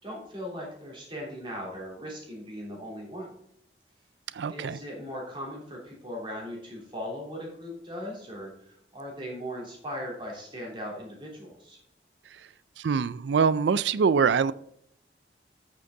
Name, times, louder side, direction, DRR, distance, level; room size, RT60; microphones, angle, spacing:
voice 1, 0.0-3.3 4.5-11.8, equal, 25° right, -2 dB, 3.1 m, -38 dB
voice 2, 4.3-4.8 12.8-14.5, right 6 dB, 80° right, 17 dB, 0.4 m, -24 dB
8.8 x 6.6 x 3.7 m, 0.72 s
head